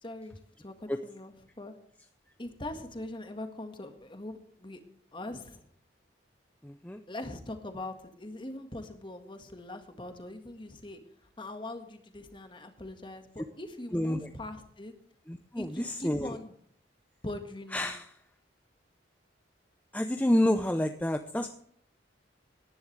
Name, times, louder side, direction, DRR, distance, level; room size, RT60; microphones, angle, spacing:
voice 1, 0.0-1.7 2.4-4.8 5.1-5.6 7.1-11.0 11.4-14.9 15.6-16.6 17.2-17.9, left 1 dB, 25° left, 7 dB, 1.7 m, -42 dB
voice 2, 6.6-7.0 13.9-14.3 15.3-16.3 17.7-18.0 19.9-21.5, left 1 dB, 10° left, 7 dB, 0.6 m, -29 dB
18.0 x 11.0 x 3.3 m, 0.64 s
head